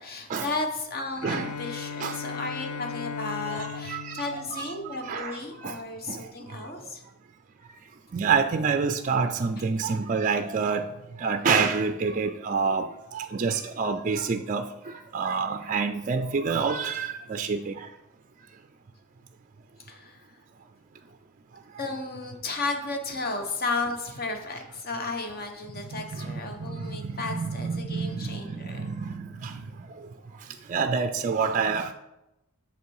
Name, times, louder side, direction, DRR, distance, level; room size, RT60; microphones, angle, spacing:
voice 1, 0.0-7.0 19.9-20.4 21.8-28.8, left 3 dB, 45° left, 4 dB, 1.2 m, -34 dB
Bowed string instrument, 1.2-5.3, left 6 dB, 85° left, 0.6 m, -37 dB
voice 2, 3.5-4.2 4.5-4.6 5.0-5.4 5.6-5.7 6.1-6.2 8.1-10.9 11.2-14.7 15.1-17.7 26.2-26.4 26.8-29.5 30.7-31.9, right 5 dB, 35° right, 8 dB, 0.4 m, -27 dB
8.2 x 6.8 x 4.7 m, 0.93 s
head